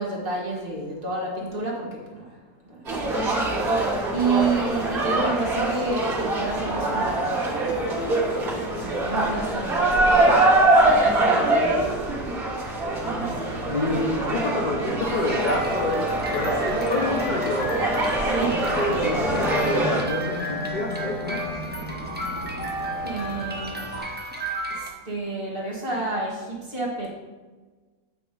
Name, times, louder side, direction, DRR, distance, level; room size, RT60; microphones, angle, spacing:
voice 1, 0.0-2.3 3.0-3.2 4.1-7.4 8.0-12.0 12.5-13.5 18.3-18.6 23.0-23.8 24.7-27.1, right 3 dB, 35° right, -4 dB, 1.5 m, -30 dB
sound 1, 2.9-20.0, right 2 dB, 65° right, 1.9 m, -23 dB
voice 2, 13.7-16.0 16.3-17.8 18.7-21.4, left 2 dB, 50° left, -1 dB, 0.5 m, -28 dB
sound 2, 15.1-24.9, right 1 dB, 15° right, 0.3 m, -33 dB
sound 3, 15.5-24.0, left 2 dB, 65° left, 2.2 m, -33 dB
8.3 x 2.9 x 4.7 m, 1.3 s
omnidirectional pair, 1.7 m